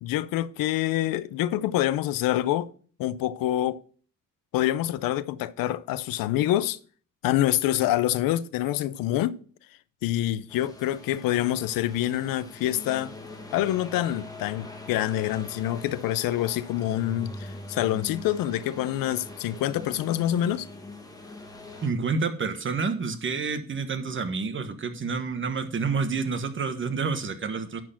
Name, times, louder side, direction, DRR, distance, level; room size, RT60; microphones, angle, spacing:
voice 1, 0.0-2.7 3.0-3.8 4.5-6.8 7.2-9.4 10.0-13.1 13.5-20.7, left 13 dB, 90° left, 0.6 m, -26 dB
sound 1, 10.5-21.9, left 2 dB, 10° left, 1.8 m, -42 dB
voice 2, 21.8-27.8, right 4 dB, 35° right, 1.3 m, -29 dB
10.5 x 4.5 x 5.8 m
cardioid pair, 100°, 33 cm